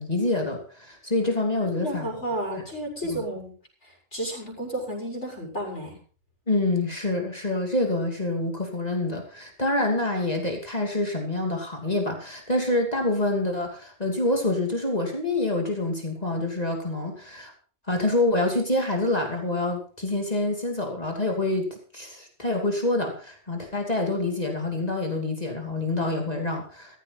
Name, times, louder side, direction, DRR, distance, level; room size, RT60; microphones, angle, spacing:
voice 1, 0.0-2.1 2.5-2.6 3.0-3.2 6.5-17.5 17.9-27.0, left 2 dB, 35° left, 2 dB, 2.9 m, -26 dB
voice 2, 1.8-3.5 4.1-5.9, right 1 dB, 90° left, 0 dB, 6.2 m, -32 dB
15.0 x 14.5 x 4.1 m, 0.40 s
omnidirectional pair, 1.2 m